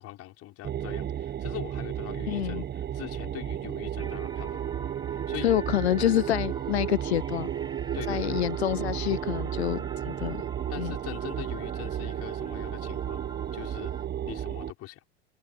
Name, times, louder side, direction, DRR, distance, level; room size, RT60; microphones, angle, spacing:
voice 1, 0.0-4.6 5.3-5.5 7.9-8.4 10.7-13.2 13.5-13.9 14.2-15.0, left 16 dB, 50° left, 5.9 m, -42 dB
sound 1, 0.6-14.7, right 10 dB, 30° right, 1.5 m, -33 dB
voice 2, 2.3-2.6 5.4-7.5 8.1-10.4 10.8-10.9, left 13 dB, 90° left, 0.5 m, -27 dB
sound 2, 4.0-14.1, right 3 dB, 15° right, 4.1 m, -47 dB
hypercardioid pair, 85°, 32 cm